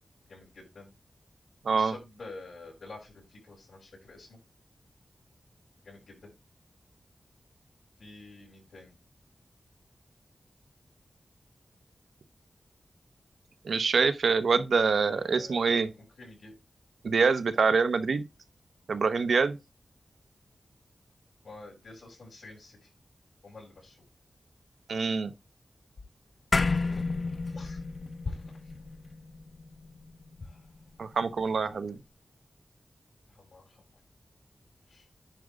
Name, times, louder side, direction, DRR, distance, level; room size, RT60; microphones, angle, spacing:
voice 1, 0.3-0.9 1.7-4.4 5.8-6.3 8.0-8.9 14.9-16.5 19.2-19.3 21.4-22.9 23.4-24.0 26.8-27.0 27.4-27.8 28.2-28.7 30.4-30.7 31.6-31.9 33.3-33.8 34.9-35.1, left 3 dB, 75° left, 5.5 m, -47 dB
voice 2, 13.6-15.9 17.0-18.2 18.9-19.6 24.9-25.3 31.0-32.0, right 5 dB, 90° right, 0.8 m, -25 dB
sound 1, 26.5-31.1, left 3 dB, 50° left, 1.0 m, -32 dB
10.0 x 3.7 x 5.1 m
wide cardioid pair, 105°, 0 cm